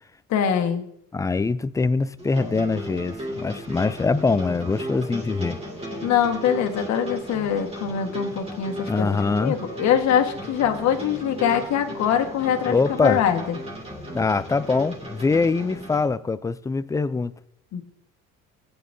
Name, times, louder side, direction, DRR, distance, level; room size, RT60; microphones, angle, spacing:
voice 1, 0.3-0.8 6.0-13.6 17.7-17.8, left 8 dB, 60° left, 1.5 m, -23 dB
voice 2, 1.1-5.6 8.9-9.6 12.6-13.2 14.1-17.3, left 4 dB, 10° left, 0.4 m, -23 dB
sound 1, 2.2-16.1, equal, 20° right, 2.4 m, -35 dB
16.5 x 9.7 x 2.7 m
supercardioid pair, 95°, 31 cm